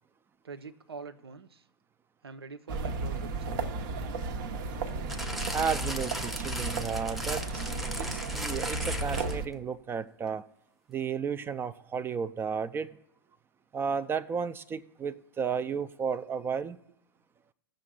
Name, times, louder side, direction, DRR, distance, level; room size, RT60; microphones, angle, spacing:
voice 1, 0.4-1.6 2.2-3.8, right 4 dB, 75° right, 0.8 m, -45 dB
sound 1, 2.7-9.5, right 3 dB, 55° right, 1.0 m, -34 dB
sound 2, 5.1-9.5 10.3-10.4, equal, ahead, 0.8 m, -37 dB
voice 2, 5.5-10.4 10.9-12.9 13.7-16.8, right 6 dB, 15° right, 0.4 m, -33 dB
18.0 x 6.4 x 2.3 m
figure-of-eight pair, 100°, 13 cm